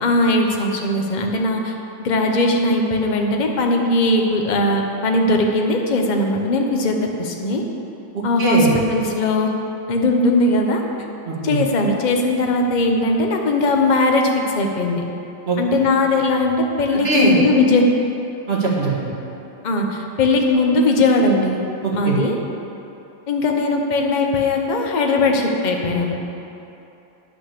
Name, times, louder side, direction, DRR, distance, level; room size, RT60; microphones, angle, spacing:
voice 1, 0.0-1.7 2.0-7.6 8.2-8.6 8.9-9.5 9.9-10.8 11.4-15.0 15.6-17.9 19.6-21.6 21.9-22.4 23.3-26.1, left 2 dB, 45° left, 2 dB, 0.6 m, -19 dB
voice 2, 8.4-8.7 11.3-11.6 15.5-15.6 16.9-17.4 18.5-19.1 21.8-22.2, right 3 dB, 35° right, -5 dB, 1.9 m, -20 dB
10.0 x 6.2 x 6.7 m, 2.9 s
omnidirectional pair, 2.0 m